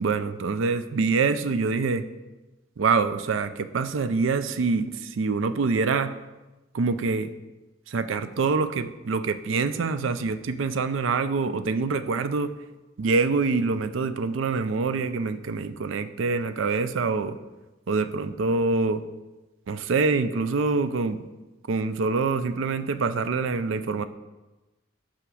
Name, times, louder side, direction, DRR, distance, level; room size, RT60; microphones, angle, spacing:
voice 1, 0.0-2.1 2.8-6.1 6.7-7.3 7.9-12.5 13.0-17.4 17.9-19.0 19.7-21.2 21.7-24.0, right 4 dB, 85° right, 11 dB, 0.4 m, -25 dB
5.8 x 4.9 x 6.2 m, 1.1 s
head